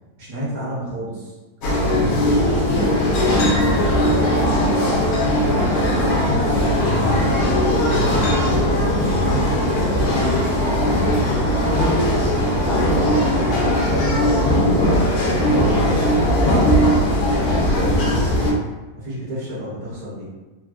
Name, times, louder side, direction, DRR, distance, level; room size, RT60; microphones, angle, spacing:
voice 1, 0.2-1.3 1.8-5.0 5.3-7.5 7.9-10.4 10.8-11.7 12.3-14.1 14.5-16.2 17.5-18.5 18.9-20.3, right 1 dB, 60° right, -8 dB, 1.5 m, -31 dB
sound 1, 1.6-18.5, left 1 dB, 75° left, 1.1 m, -19 dB
3.3 x 2.4 x 2.2 m, 1.1 s
omnidirectional pair, 1.7 m